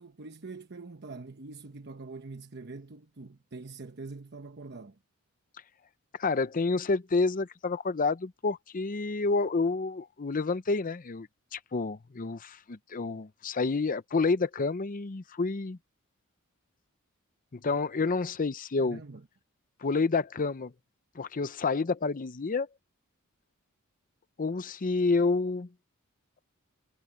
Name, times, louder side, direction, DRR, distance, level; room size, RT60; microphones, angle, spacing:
voice 1, 0.0-5.0 18.8-19.3, right 3 dB, 50° right, 1.0 m, -44 dB
voice 2, 6.2-15.8 17.5-19.0 19.8-20.7 21.2-22.7 24.4-25.7, left 3 dB, 40° left, 0.6 m, -29 dB
head